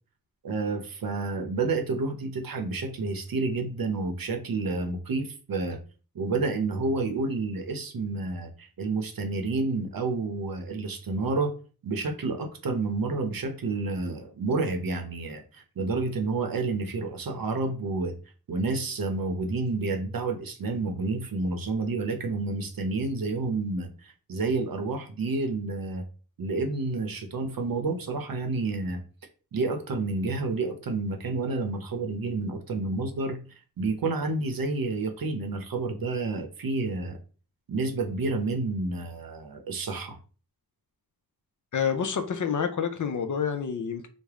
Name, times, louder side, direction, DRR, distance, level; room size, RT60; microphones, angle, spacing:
voice 1, 0.4-5.8 6.1-11.5 11.8-18.1 18.5-26.0 26.4-29.0 29.5-33.4 33.8-37.2 37.7-40.2, right 3 dB, 65° right, 0.8 m, -29 dB
voice 2, 41.7-44.1, left 7 dB, 55° left, 0.5 m, -28 dB
3.4 x 2.1 x 3.5 m
wide cardioid pair, 70°, 38 cm